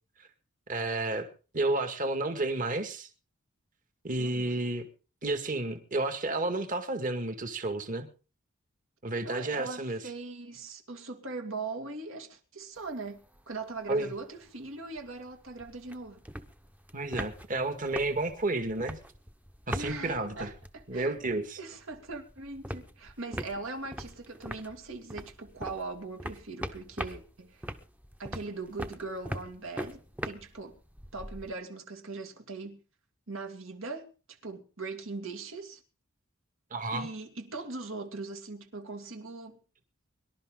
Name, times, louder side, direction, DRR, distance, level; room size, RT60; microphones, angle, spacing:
voice 1, 0.7-1.3 1.5-3.1 4.0-4.9 5.2-8.1 9.0-10.0 13.9-14.1 16.9-19.0 19.7-20.5 20.9-21.6 36.7-37.1, right 2 dB, 40° right, 2.0 m, -31 dB
voice 2, 4.2-4.6 9.2-13.2 13.5-16.2 19.7-21.2 21.6-27.6 28.2-30.8 31.1-32.8 33.3-34.1 34.4-35.8 36.9-39.6, right 3 dB, 70° right, 2.5 m, -40 dB
sound 1, 12.8-13.5 13.8-13.9 14.1-21.5 21.8-31.5, equal, 5° right, 0.9 m, -41 dB
24.0 x 12.0 x 3.9 m
head